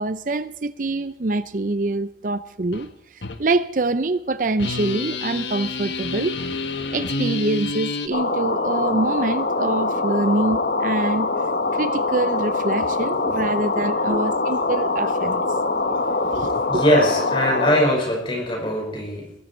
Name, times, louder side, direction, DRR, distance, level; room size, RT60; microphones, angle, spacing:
voice 1, 0.0-6.3 6.9-11.3 11.7-15.4 16.3-16.8, right 2 dB, 50° right, 0.6 m, -25 dB
sound 1, 2.7-2.9 3.2-3.4 4.6-8.1, left 3 dB, 85° left, 1.4 m, -28 dB
sound 2, 8.1-17.8, left 3 dB, 60° left, 1.2 m, -23 dB
voice 2, 16.3-19.3, equal, 30° left, 5.4 m, -22 dB
21.0 x 15.0 x 4.5 m
head